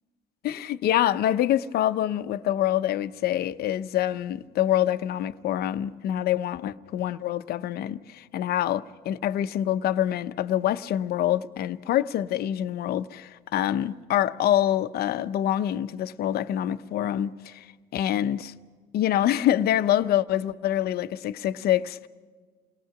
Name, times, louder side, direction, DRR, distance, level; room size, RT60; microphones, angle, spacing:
voice 1, 0.4-17.7 17.9-18.5 18.9-22.1, left 12 dB, 65° left, 0.8 m, -26 dB
28.5 x 19.0 x 6.0 m
cardioid pair, 110°, 17 cm